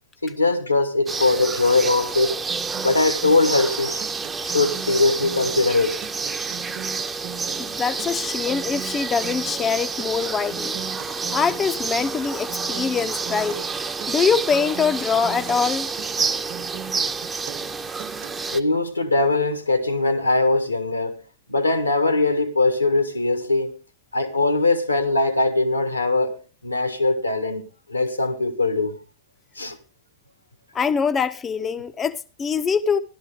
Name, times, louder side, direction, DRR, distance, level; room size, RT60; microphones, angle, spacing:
voice 1, 0.2-2.4 2.8-4.1 4.4-6.0 14.6-14.7 18.5-21.2 21.5-23.8 24.1-27.6 27.9-29.0 29.5-29.8, left 3 dB, 85° left, 1.7 m, -21 dB
sound 1, 1.1-18.6, right 4 dB, 15° right, 0.8 m, -29 dB
Acoustic guitar, 2.5-18.5, right 11 dB, 45° right, 1.3 m, -40 dB
voice 2, 7.6-10.8 11.3-13.6 14.1-15.9 30.7-33.0, left 6 dB, 20° left, 0.6 m, -23 dB
14.5 x 12.0 x 3.6 m
figure-of-eight pair, 90°, 0 cm